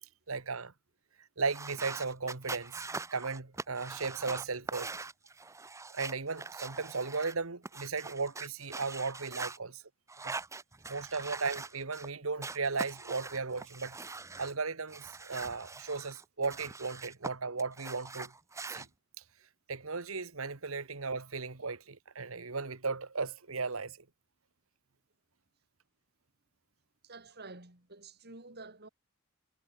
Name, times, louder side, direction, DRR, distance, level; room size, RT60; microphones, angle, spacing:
voice 1, 0.3-0.7 1.4-2.8 3.1-4.9 5.9-9.8 10.2-10.4 10.9-14.0 14.4-18.3 18.7-18.9 19.7-24.0, right 4 dB, 85° right, 1.6 m, -36 dB
sound 1, 1.4-7.3 7.6-9.6 10.1-12.1 12.4-14.5 14.9-17.3 17.6-18.9, right 3 dB, 15° right, 0.6 m, -43 dB
voice 2, 27.0-28.9, right 3 dB, 50° right, 5.3 m, -49 dB
head